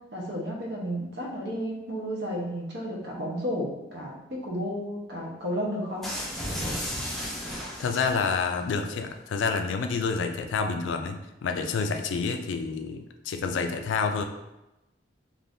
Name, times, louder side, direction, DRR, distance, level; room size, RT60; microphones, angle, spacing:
voice 1, 0.1-6.0, equal, 65° right, -2 dB, 0.8 m, -32 dB
sound 1, 6.0-8.5, equal, ahead, 0.5 m, -34 dB
voice 2, 7.8-14.2, left 5 dB, 85° left, 6 dB, 0.3 m, -28 dB
2.6 x 2.5 x 3.4 m, 0.95 s
head